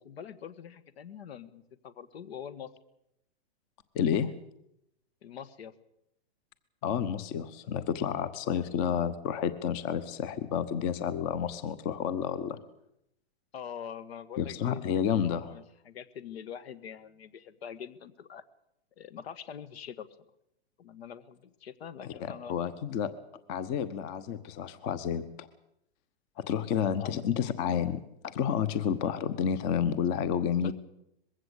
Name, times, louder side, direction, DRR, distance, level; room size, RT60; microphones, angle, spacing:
voice 1, 0.0-2.7 5.2-5.7 13.5-14.9 15.5-18.4 19.0-20.1 20.8-22.5 27.0-27.2 30.6-30.7, left 8 dB, 70° left, 13 dB, 1.7 m, -44 dB
voice 2, 3.9-4.3 6.8-12.6 14.4-15.5 22.0-23.1 23.5-25.5 26.4-30.7, left 8 dB, 35° left, 14 dB, 1.1 m, -30 dB
21.5 x 16.0 x 8.3 m, 0.81 s
hypercardioid pair, 145°, 32 cm